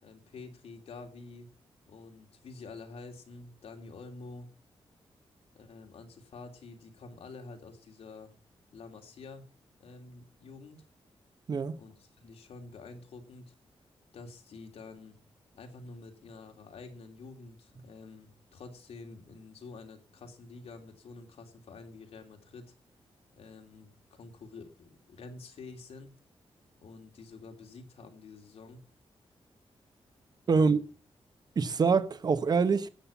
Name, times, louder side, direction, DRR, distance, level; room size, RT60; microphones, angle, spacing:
voice 1, 0.0-1.5 1.9-4.5 5.5-8.3 8.7-9.4 9.8-10.8 11.8-13.5 14.1-15.2 15.5-22.7 23.3-26.1 26.8-28.8 30.5-30.7, left 3 dB, 85° left, 3.0 m, -48 dB
voice 2, 30.5-30.8 31.6-32.9, right 5 dB, 40° right, 0.9 m, -25 dB
13.0 x 8.8 x 7.0 m
wide cardioid pair, 170°, 10 cm